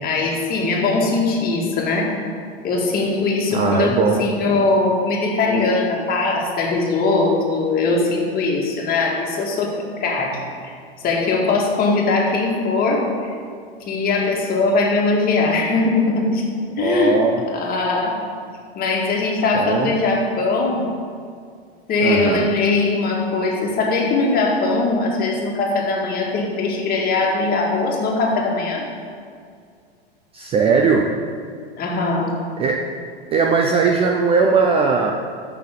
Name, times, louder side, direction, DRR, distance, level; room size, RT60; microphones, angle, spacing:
voice 1, 0.0-2.1 2.6-10.7 11.0-13.3 13.9-16.5 16.8-18.2 18.8-20.9 21.9-28.9 31.8-32.4, left 3 dB, 30° left, -1 dB, 2.0 m, -20 dB
voice 2, 3.5-4.3 16.8-17.4 19.5-19.9 22.0-22.5 30.3-31.1 32.6-32.8 33.3-35.1, right 5 dB, 20° right, 2 dB, 0.4 m, -19 dB
13.5 x 5.9 x 3.9 m, 2.2 s
hypercardioid pair, 125°, 32 cm